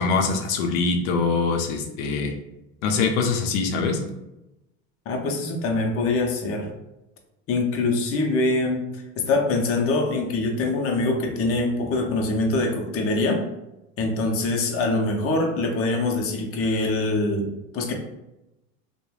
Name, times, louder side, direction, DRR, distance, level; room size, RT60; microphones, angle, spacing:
voice 1, 0.0-2.3 2.8-4.0, left 4 dB, 80° left, 4 dB, 0.6 m, -23 dB
voice 2, 5.1-6.7 7.5-8.9 9.2-13.4 14.0-17.9, left 2 dB, 35° left, 1 dB, 0.6 m, -24 dB
3.0 x 2.1 x 2.3 m, 0.91 s
supercardioid pair, 105°, 40 cm